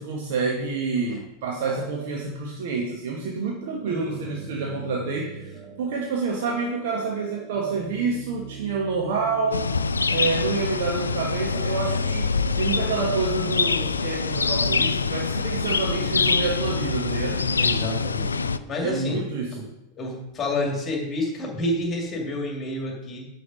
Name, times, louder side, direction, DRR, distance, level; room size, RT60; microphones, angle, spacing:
voice 1, 0.0-9.7 10.1-17.4 18.8-19.7, right 4 dB, 50° right, -1 dB, 1.3 m, -28 dB
sound 1, 3.5-19.5, right 5 dB, 25° right, 1.6 m, -42 dB
sound 2, 9.5-18.6, left 4 dB, 75° left, 0.3 m, -25 dB
voice 2, 17.6-18.3 18.7-19.2 20.0-23.3, left 2 dB, 25° left, 0 dB, 2.3 m, -29 dB
9.5 x 4.8 x 5.3 m, 0.90 s
figure-of-eight pair, 90°, 0 cm